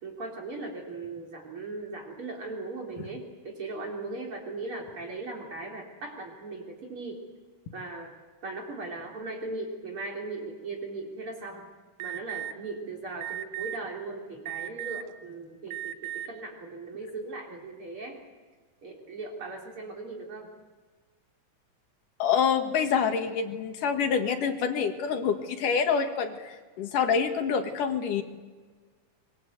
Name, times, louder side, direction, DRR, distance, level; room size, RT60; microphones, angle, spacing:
voice 1, 0.0-7.2 7.7-8.1 8.4-11.7 12.0-18.2 18.8-20.5, right 3 dB, 40° right, 0 dB, 4.1 m, -38 dB
Alarm, 12.0-12.5 13.2-13.8 14.5-15.1 15.7-16.3, right 13 dB, 70° right, 1.3 m, -35 dB
voice 2, 22.2-28.2, left 6 dB, 80° left, 5 dB, 3.4 m, -26 dB
24.0 x 22.0 x 8.0 m, 1.5 s
omnidirectional pair, 3.7 m